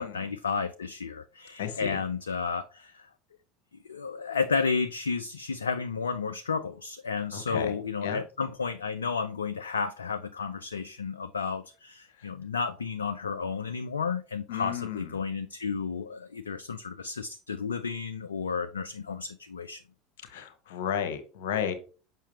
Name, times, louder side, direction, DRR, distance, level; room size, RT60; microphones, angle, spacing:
voice 1, 0.0-3.1 3.9-19.8, left 5 dB, 80° left, 0.3 m, -32 dB
voice 2, 1.6-2.0 7.3-7.7 8.0-8.2 12.2-12.3 14.5-15.2 20.2-21.7, left 8 dB, 65° left, 1.1 m, -33 dB
7.2 x 5.5 x 2.8 m
figure-of-eight pair, 70°, 0 cm